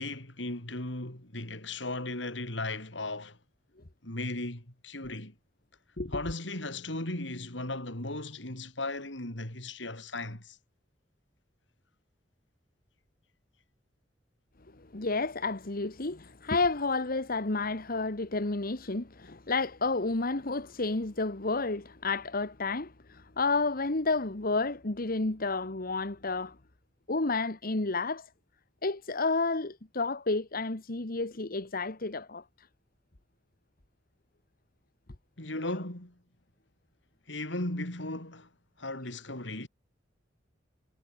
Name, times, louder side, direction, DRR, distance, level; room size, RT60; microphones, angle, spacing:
voice 1, 0.0-3.4 4.0-5.3 6.1-10.6 35.4-36.2 37.3-38.5 38.8-39.7, left 2 dB, 70° left, 5.1 m, -36 dB
voice 2, 14.8-26.5 27.1-28.3 28.8-32.4, left 3 dB, 50° left, 1.6 m, -31 dB
head